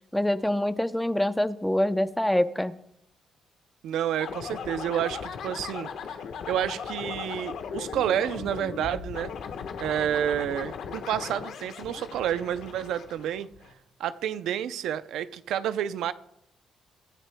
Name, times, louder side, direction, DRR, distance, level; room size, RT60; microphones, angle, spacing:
voice 1, 0.1-2.7, left 1 dB, 5° left, 0.6 m, -25 dB
voice 2, 3.8-5.9 6.5-9.3 9.8-13.5 14.0-16.1, right 10 dB, 80° right, 0.5 m, -29 dB
sound 1, 4.2-13.7, left 6 dB, 75° left, 1.3 m, -38 dB
23.5 x 10.0 x 2.2 m
cardioid pair, 90°, 0 cm